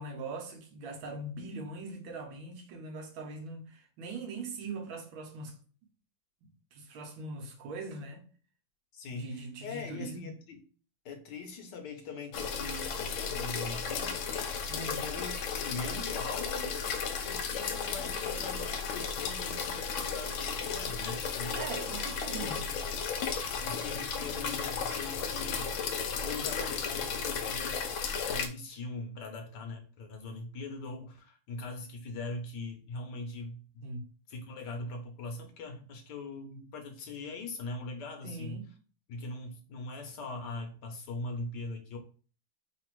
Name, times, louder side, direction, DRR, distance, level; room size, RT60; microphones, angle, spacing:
voice 1, 0.0-5.6 6.7-8.3 9.1-10.3 14.7-15.1 21.6-22.6 33.8-34.1 38.2-38.7, right 3 dB, 80° right, 1.7 m, -41 dB
voice 2, 8.9-10.6 11.0-14.3 14.9-16.8 17.3-21.6 22.4-22.8 23.6-25.7 26.2-27.8 28.3-33.9 34.3-38.6 39.1-42.0, left 3 dB, 65° left, 1.4 m, -41 dB
sound 1, 12.3-28.5, left 6 dB, 85° left, 1.4 m, -34 dB
3.9 x 2.5 x 4.5 m
omnidirectional pair, 2.2 m